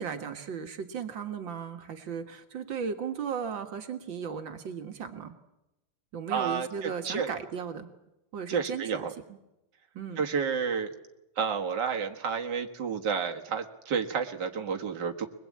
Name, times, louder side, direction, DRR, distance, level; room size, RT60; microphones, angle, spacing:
voice 1, 0.0-5.3 6.1-7.9 8.3-9.1 9.9-10.2, right 6 dB, 85° right, 6 dB, 2.3 m, -36 dB
voice 2, 6.3-7.3 8.5-9.1 10.2-10.9 11.4-15.3, right 6 dB, 65° right, 2 dB, 2.2 m, -30 dB
23.0 x 21.5 x 8.6 m, 0.91 s
omnidirectional pair, 2.0 m